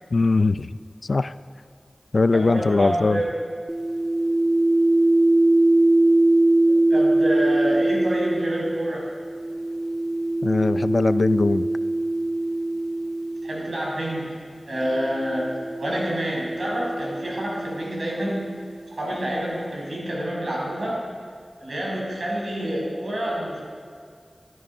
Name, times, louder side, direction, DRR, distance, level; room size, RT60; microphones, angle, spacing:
voice 1, 0.1-0.7 1.0-1.3 2.1-3.2 10.4-11.7, left 3 dB, 65° left, 15 dB, 0.4 m, -20 dB
voice 2, 2.3-3.3 6.7-9.1 13.4-14.3 14.7-15.5 15.8-18.5 18.9-21.0 21.6-23.6, equal, 70° right, -3 dB, 5.7 m, -28 dB
sound 1, 3.7-14.1 15.0-18.7, right 2 dB, 20° right, 0.5 m, -22 dB
21.5 x 11.5 x 5.5 m, 2.1 s
wide cardioid pair, 50°, 0 cm